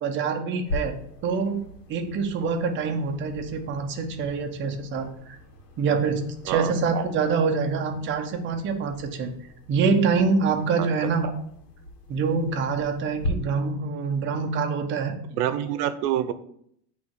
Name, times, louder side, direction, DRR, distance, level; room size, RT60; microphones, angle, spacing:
voice 1, 0.0-5.4 5.8-9.3 9.7-11.3 12.1-15.1, right 5 dB, 25° right, 4 dB, 0.6 m, -25 dB
sound 1, 0.6-13.3, left 1 dB, 90° left, 1.6 m, -40 dB
voice 2, 15.3-16.3, right 11 dB, 70° right, 11 dB, 0.8 m, -26 dB
8.5 x 3.2 x 4.6 m, 0.68 s
supercardioid pair, 150°, 47 cm